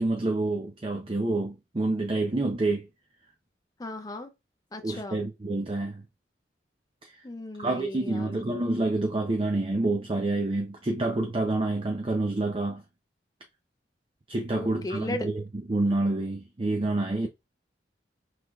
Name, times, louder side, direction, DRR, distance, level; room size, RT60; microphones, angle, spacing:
voice 1, 0.0-2.9 4.8-6.0 7.0-7.1 7.6-12.8 14.3-15.4 15.7-17.3, right 2 dB, 30° right, 0.5 m, -28 dB
voice 2, 3.8-4.3 4.7-5.2 7.2-8.4 14.5-15.3, left 2 dB, 20° left, 0.5 m, -36 dB
5.8 x 3.3 x 2.3 m
head